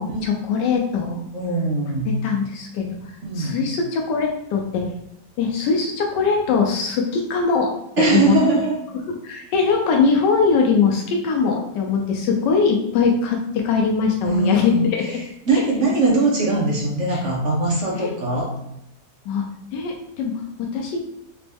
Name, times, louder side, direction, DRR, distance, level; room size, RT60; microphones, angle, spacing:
voice 1, 0.0-1.2 2.0-4.9 5.4-8.4 8.9-15.2 15.5-15.6 17.1-17.2 17.9-18.1 19.3-19.5 19.7-21.0, left 5 dB, 90° left, 1 dB, 1.3 m, -21 dB
voice 2, 1.3-2.1 3.2-3.6 8.0-8.8 14.2-15.1 15.5-18.5, right 3 dB, 50° right, -1 dB, 1.1 m, -21 dB
4.3 x 3.0 x 3.4 m, 0.83 s
omnidirectional pair, 1.8 m